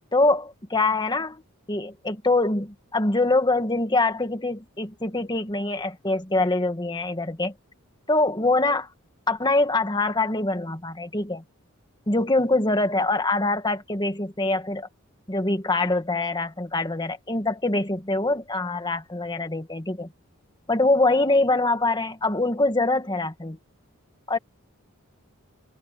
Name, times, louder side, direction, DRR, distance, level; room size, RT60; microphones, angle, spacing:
voice 1, 0.1-1.4 1.7-7.5 8.1-8.9 9.3-11.4 12.1-14.9 15.3-20.1 20.7-23.6 24.3-24.4, left 2 dB, 20° left, 1.9 m, -24 dB
head